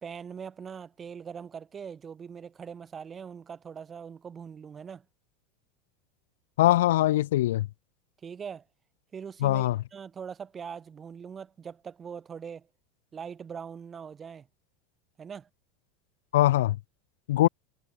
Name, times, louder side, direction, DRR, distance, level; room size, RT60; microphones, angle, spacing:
voice 1, 0.0-5.0 8.2-8.6 9.1-12.7 13.1-14.5 15.2-15.5, right 7 dB, 25° right, 4.2 m, -41 dB
voice 2, 6.6-7.7 9.4-9.8 16.3-16.8 17.3-17.5, left 15 dB, 85° left, 0.4 m, -22 dB
supercardioid pair, 115°, 0 cm